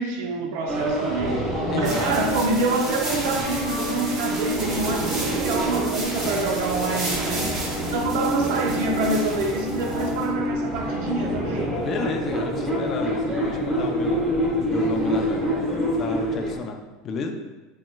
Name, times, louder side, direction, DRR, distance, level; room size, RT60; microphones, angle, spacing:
voice 1, 0.0-1.5 1.7-7.5 7.8-11.8, right 3 dB, 70° right, 2 dB, 0.6 m, -26 dB
sound 1, 0.7-16.6, equal, 15° right, 1.1 m, -27 dB
voice 2, 1.7-2.1 11.7-14.3 14.6-15.5 15.9-17.4, left 4 dB, 35° left, 5 dB, 0.4 m, -31 dB
sound 2, 1.8-10.2, right 2 dB, 40° right, 1.4 m, -33 dB
4.1 x 3.5 x 2.2 m, 1.2 s
supercardioid pair, 125°, 0 cm